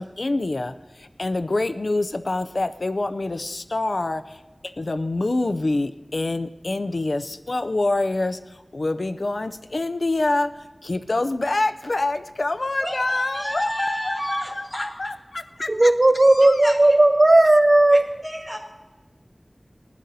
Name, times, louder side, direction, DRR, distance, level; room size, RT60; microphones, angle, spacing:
voice 1, 0.0-16.7, left 2 dB, 85° left, 0.4 m, -26 dB
voice 2, 12.8-14.9 16.4-16.8 17.9-18.6, equal, 5° left, 3.7 m, -31 dB
voice 3, 15.7-18.1, right 2 dB, 55° right, 0.4 m, -15 dB
20.5 x 11.5 x 2.7 m
wide cardioid pair, 50°, 0 cm